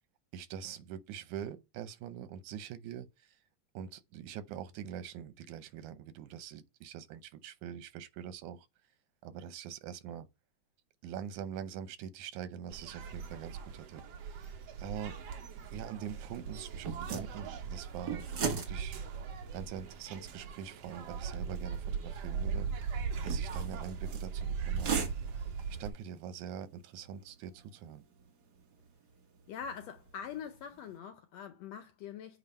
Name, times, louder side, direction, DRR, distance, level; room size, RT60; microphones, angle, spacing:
voice 1, 0.3-3.4 3.7-8.7 9.2-10.3 11.0-15.2 15.7-19.0 19.5-22.7 23.2-25.1 25.8-28.0, right 8 dB, 85° right, 2.3 m, -44 dB
sound 1, 12.7-25.9, right 6 dB, 65° right, 2.0 m, -39 dB
sound 2, 15.1-31.0, right 6 dB, 45° right, 1.4 m, -43 dB
voice 2, 29.5-32.4, left 7 dB, 75° left, 1.7 m, -43 dB
9.0 x 3.4 x 5.3 m
omnidirectional pair, 3.4 m